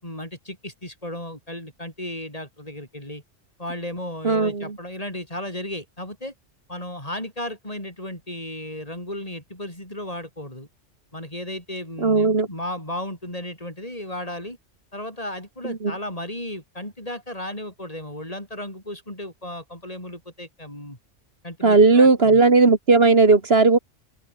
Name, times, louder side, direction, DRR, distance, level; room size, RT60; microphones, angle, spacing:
voice 1, 0.0-3.2 3.6-6.3 6.7-10.7 11.1-14.6 14.9-21.0 21.4-22.4, left 1 dB, 30° left, 7.6 m, -34 dB
voice 2, 4.2-4.8 12.0-12.5 15.6-15.9 21.6-23.8, right 3 dB, 55° right, 2.4 m, -16 dB
open air
omnidirectional pair, 1.3 m